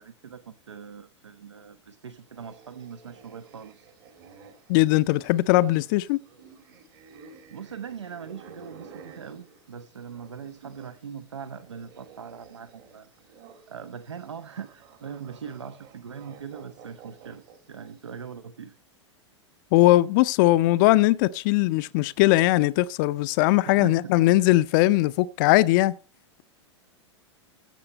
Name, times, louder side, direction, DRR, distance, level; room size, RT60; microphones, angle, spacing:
voice 1, 0.0-3.9 7.5-13.1 13.7-17.4 17.7-18.8 23.6-24.1, right 7 dB, 70° right, 0.8 m, -41 dB
sound 1, 2.3-11.0 11.3-18.1, right 6 dB, 50° right, 2.4 m, -52 dB
voice 2, 4.7-6.2 19.7-26.0, left 17 dB, 40° left, 0.5 m, -20 dB
15.5 x 7.5 x 5.4 m
figure-of-eight pair, 95°, 15 cm